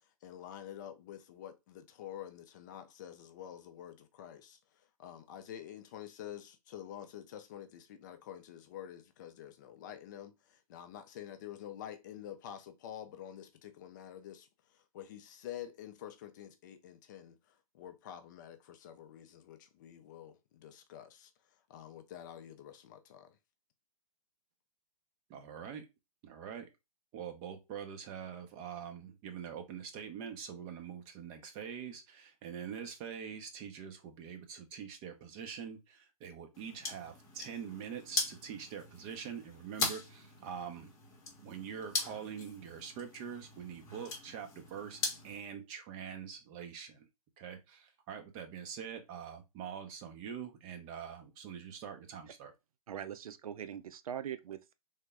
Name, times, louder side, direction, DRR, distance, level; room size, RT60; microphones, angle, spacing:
voice 1, 0.2-23.4, left 10 dB, 30° left, 0.4 m, -48 dB
voice 2, 25.3-25.8 26.2-26.7 27.1-40.9 41.4-47.1 47.4-52.5, right 7 dB, 25° right, 0.6 m, -44 dB
sound 1, 36.5-45.4, left 4 dB, 15° left, 0.9 m, -41 dB
voice 3, 52.9-54.7, right 9 dB, 70° right, 0.4 m, -42 dB
3.4 x 2.1 x 3.3 m
hypercardioid pair, 145°, 19 cm